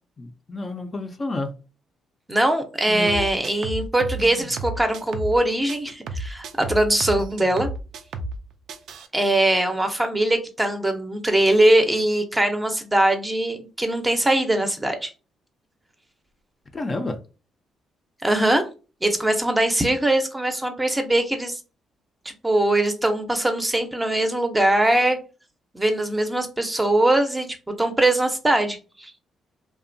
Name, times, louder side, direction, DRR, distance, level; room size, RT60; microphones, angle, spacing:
voice 1, 0.2-1.5 2.9-3.3 16.7-17.2, left 2 dB, 35° left, 0.4 m, -30 dB
voice 2, 2.3-7.7 9.1-15.1 18.2-18.6 19.0-21.6 22.3-25.2 25.7-27.5 27.8-29.1, right 1 dB, 15° right, 0.5 m, -21 dB
sound 1, 3.1-5.4 5.7-8.4 8.7-9.1, right 2 dB, 75° right, 0.3 m, -32 dB
2.7 x 2.1 x 2.6 m
cardioid pair, 90°, 0 cm